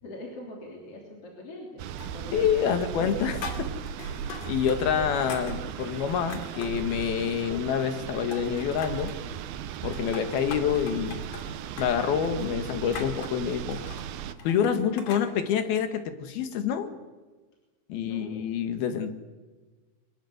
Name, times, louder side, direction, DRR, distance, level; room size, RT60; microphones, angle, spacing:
voice 1, 0.0-3.3 18.0-18.5, left 1 dB, 40° left, -1 dB, 3.9 m, -42 dB
sound 1, 1.8-14.3, right 9 dB, 85° right, 2.9 m, -36 dB
sound 2, 2.0-2.6 2.8-4.8 5.0-6.8 7.3-8.0 8.3-9.2 9.7-15.3, left 5 dB, 60° left, 3.9 m, -42 dB
voice 2, 2.3-3.7 4.5-9.1 9.8-11.2 11.8-13.8 14.4-16.9 17.9-19.1, left 8 dB, 85° left, 8 dB, 3.6 m, -27 dB
24.5 x 20.5 x 8.0 m, 1.3 s
omnidirectional pair, 4.3 m